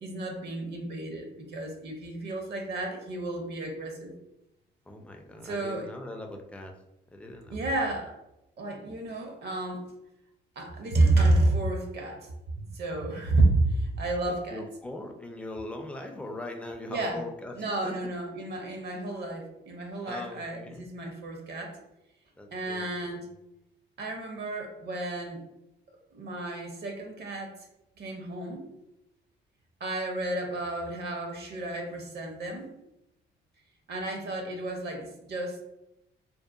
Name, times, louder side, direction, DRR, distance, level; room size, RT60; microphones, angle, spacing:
voice 1, 0.0-4.1 5.4-5.9 7.5-8.1 8.6-9.8 10.6-12.3 12.6-14.6 16.9-17.2 17.6-21.8 22.5-23.3 24.0-25.4 26.1-27.5 28.0-28.6 29.8-32.7 33.9-35.6, right 2 dB, 55° right, 3 dB, 0.6 m, -30 dB
voice 2, 4.9-6.7 7.1-7.7 14.3-18.0 20.1-20.8 22.4-23.3, left 2 dB, 5° left, 3 dB, 0.3 m, -41 dB
2.7 x 2.0 x 2.3 m, 0.89 s
cardioid pair, 90°, 20 cm